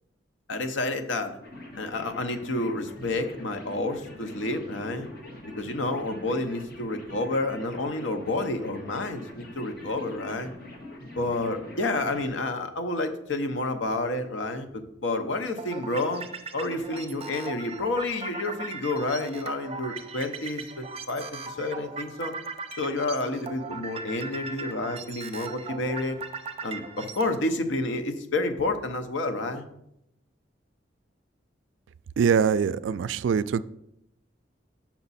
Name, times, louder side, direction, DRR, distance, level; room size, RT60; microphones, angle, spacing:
voice 1, 0.5-1.4 1.8-5.1 5.6-10.5 11.2-16.2 16.5-22.3 22.8-26.2 26.6-29.6, left 2 dB, 85° left, 7 dB, 0.8 m, -30 dB
sound 1, 1.4-12.3, left 1 dB, 55° left, 1.5 m, -43 dB
sound 2, 15.6-27.4, right 4 dB, 35° right, 0.6 m, -39 dB
voice 2, 32.2-33.6, right 6 dB, 80° right, 16 dB, 0.3 m, -23 dB
6.9 x 5.9 x 4.1 m, 0.79 s
head